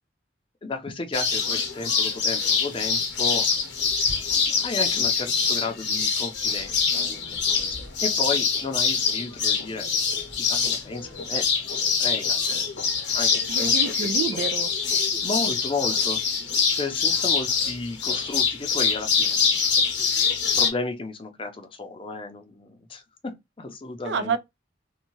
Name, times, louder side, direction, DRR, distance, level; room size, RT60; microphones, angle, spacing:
voice 1, 0.6-3.5 4.3-9.9 10.4-12.7 13.1-14.1 15.2-16.2 16.7-19.4 20.6-24.3, left 3 dB, 30° left, 0.5 m, -33 dB
sound 1, 1.1-20.7, left 5 dB, 65° left, 0.8 m, -24 dB
voice 2, 13.5-14.7 24.0-24.4, right 6 dB, 70° right, 0.3 m, -28 dB
2.7 x 2.2 x 2.9 m
head